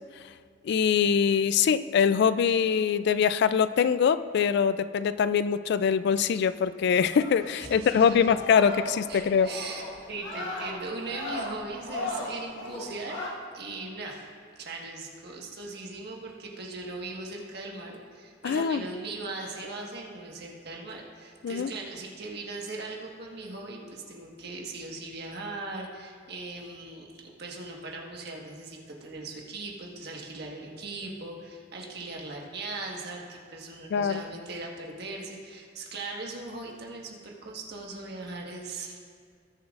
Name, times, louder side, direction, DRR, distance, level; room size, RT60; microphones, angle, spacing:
voice 1, 0.6-9.5 18.4-18.9 21.4-21.7 33.9-34.2, left 7 dB, 60° left, 14 dB, 0.3 m, -23 dB
sound 1, 7.0-13.3, left 1 dB, 80° left, 1.6 m, -38 dB
voice 2, 7.6-8.3 9.1-9.8 10.1-13.2 13.5-14.3 14.6-39.0, right 3 dB, 60° right, -1 dB, 1.5 m, -39 dB
19.0 x 7.2 x 2.5 m, 2.1 s
head